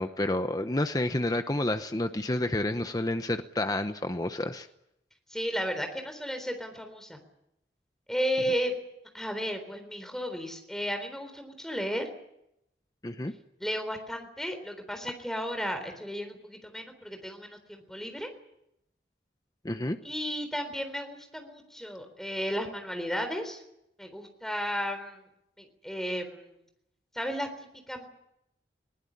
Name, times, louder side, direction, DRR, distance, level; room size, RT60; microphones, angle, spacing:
voice 1, 0.0-4.7 13.0-13.3 19.6-20.0, left 1 dB, 20° left, 8 dB, 0.9 m, -29 dB
voice 2, 5.3-7.2 8.1-8.7 9.1-12.1 13.6-18.3 20.0-23.6 24.0-25.3 25.6-26.5 27.1-27.5 27.9-28.1, equal, 5° left, 6 dB, 3.8 m, -34 dB
21.5 x 19.0 x 10.0 m, 0.81 s
head